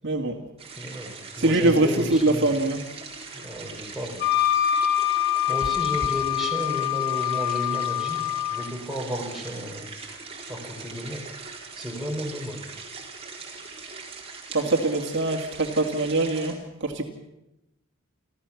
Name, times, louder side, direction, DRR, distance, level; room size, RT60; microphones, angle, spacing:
voice 1, 0.0-0.3 1.4-2.8 14.5-17.0, right 2 dB, 55° right, 3 dB, 2.2 m, -23 dB
sound 1, 0.6-16.5, right 4 dB, 30° right, 4.4 m, -41 dB
voice 2, 0.7-2.5 3.4-4.2 5.5-8.2 8.5-10.2 10.5-11.2 11.7-12.7, equal, ahead, -1 dB, 4.2 m, -33 dB
Wind instrument woodwind instrument, 4.2-8.7, left 12 dB, 50° left, 3.2 m, -25 dB
29.5 x 13.5 x 7.2 m, 0.93 s
head